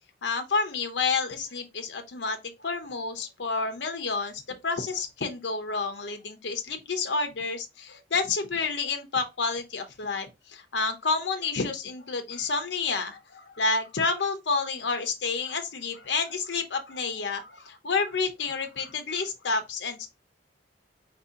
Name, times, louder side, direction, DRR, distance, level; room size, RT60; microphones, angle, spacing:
voice 1, 0.2-20.1, left 4 dB, 75° left, 0.8 m, -29 dB
4.7 x 2.8 x 3.6 m
head